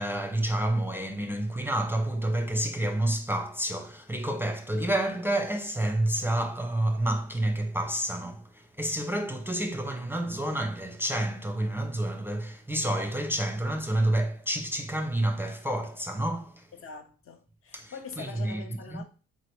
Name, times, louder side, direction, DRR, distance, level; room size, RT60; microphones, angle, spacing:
voice 1, 0.0-16.7 17.7-19.0, right 1 dB, 5° right, 0.6 m, -29 dB
voice 2, 16.7-19.0, left 5 dB, 45° left, 0.9 m, -44 dB
3.9 x 2.9 x 3.2 m
hypercardioid pair, 55°, 30 cm